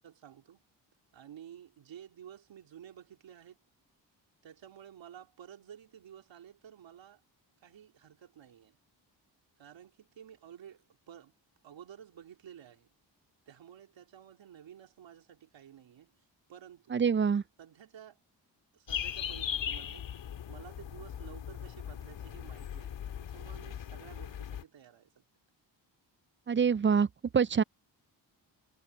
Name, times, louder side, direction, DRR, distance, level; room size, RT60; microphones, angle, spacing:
voice 1, 0.0-0.6 1.1-3.6 4.4-7.2 7.6-8.8 9.6-11.3 11.6-12.9 13.5-16.1 16.5-17.0 17.6-18.2 18.7-25.2, right 9 dB, 85° right, 3.4 m, -52 dB
voice 2, 16.9-17.4 26.5-27.1 27.3-27.6, right 6 dB, 30° right, 0.4 m, -25 dB
sound 1, 18.9-24.6, left 9 dB, 80° left, 2.0 m, -39 dB
cardioid pair, 70°, 44 cm